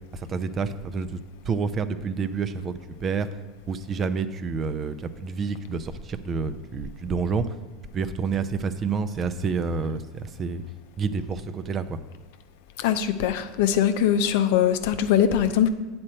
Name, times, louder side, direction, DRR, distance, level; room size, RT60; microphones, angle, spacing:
voice 1, 0.1-1.1 1.4-3.3 3.7-7.5 7.9-10.6 11.0-12.0, right 5 dB, 35° right, 12 dB, 0.6 m, -28 dB
voice 2, 12.8-15.7, left 9 dB, 65° left, 9 dB, 0.6 m, -22 dB
8.6 x 4.4 x 6.4 m, 1.3 s
hypercardioid pair, 85°, 0 cm